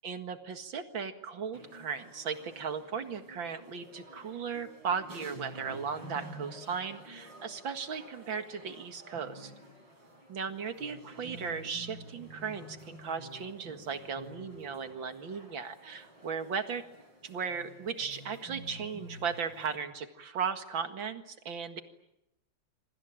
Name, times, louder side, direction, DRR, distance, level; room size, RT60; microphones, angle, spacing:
voice 1, 0.0-9.5 10.3-16.8 17.2-21.8, right 6 dB, 90° right, 8 dB, 2.6 m, -36 dB
sound 1, 1.5-19.8, right 1 dB, 75° right, 7.7 m, -50 dB
27.0 x 24.5 x 9.0 m, 0.85 s
omnidirectional pair, 2.0 m